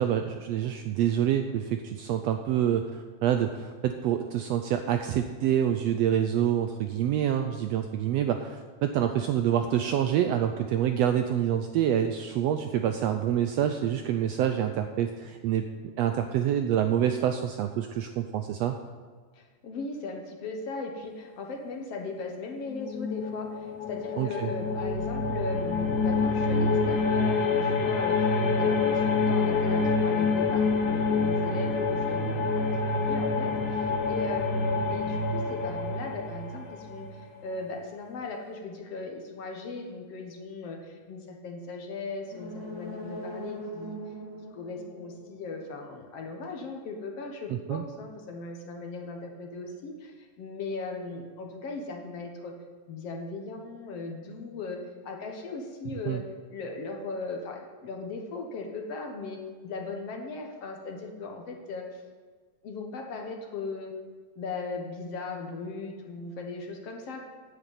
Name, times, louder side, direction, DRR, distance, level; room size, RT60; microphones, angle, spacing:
voice 1, 0.0-15.6 16.0-18.7 24.2-24.5 47.5-47.8 56.1-56.2, right 10 dB, 80° right, 7 dB, 1.5 m, -27 dB
voice 2, 19.3-32.7 33.0-44.0 44.5-52.5 52.9-56.2 56.5-59.4 59.6-62.0 62.6-63.9 64.4-67.3, left 3 dB, 60° left, 3 dB, 2.1 m, -38 dB
sound 1, 22.7-37.4, left 4 dB, 85° left, 3.0 m, -27 dB
sound 2, 42.2-45.9 46.3-46.4, equal, 10° right, 1.8 m, -41 dB
9.9 x 8.4 x 9.0 m, 1.5 s
omnidirectional pair, 3.5 m